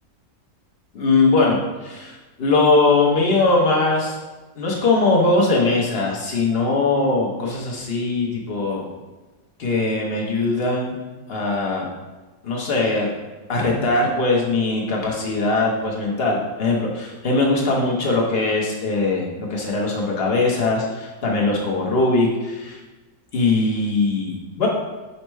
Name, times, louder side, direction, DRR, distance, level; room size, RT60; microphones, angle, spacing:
voice 1, 0.9-4.1 4.6-8.8 9.6-11.0 11.3-11.9 12.4-13.1 13.5-22.8 23.3-24.7, left 3 dB, 50° left, -1 dB, 0.8 m, -21 dB
5.4 x 2.1 x 4.5 m, 1.2 s
omnidirectional pair, 1.7 m